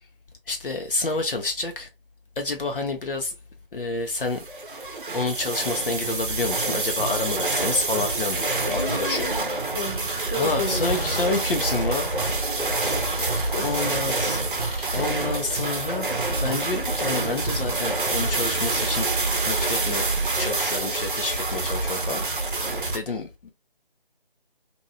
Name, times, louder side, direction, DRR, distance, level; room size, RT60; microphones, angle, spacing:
voice 1, 0.5-1.9 2.4-3.3 3.7-4.4 5.1-9.3 10.3-12.6 13.6-19.1 19.5-20.1 20.4-22.2 22.9-23.5, left 3 dB, 65° left, 0.6 m, -29 dB
sound 1, 4.2-23.0, right 3 dB, 60° right, 0.7 m, -27 dB
voice 2, 8.6-11.1 13.5-14.3, left 2 dB, 30° left, 0.8 m, -33 dB
Fireworks, 10.5-16.5, left 1 dB, 90° left, 1.4 m, -35 dB
2.7 x 2.2 x 2.7 m
figure-of-eight pair, 165°, 29 cm